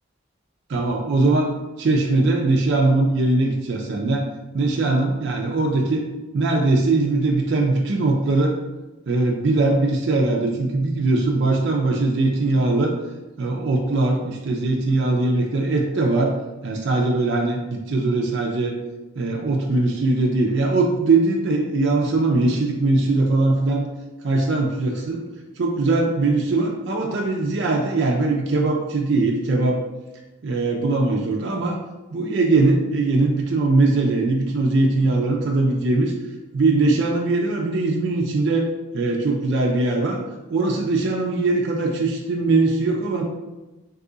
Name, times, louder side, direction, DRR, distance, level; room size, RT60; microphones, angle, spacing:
voice 1, 0.7-1.5 1.8-4.2 4.5-6.0 6.3-8.5 9.1-12.9 13.4-16.3 16.6-17.6 17.9-18.7 19.2-23.9 24.2-25.2 25.6-29.8 30.4-31.8 32.1-36.1 36.5-38.7 38.9-40.2 40.5-43.2, right 2 dB, 60° right, 0 dB, 0.4 m, -21 dB
2.6 x 2.5 x 3.7 m, 1.1 s
head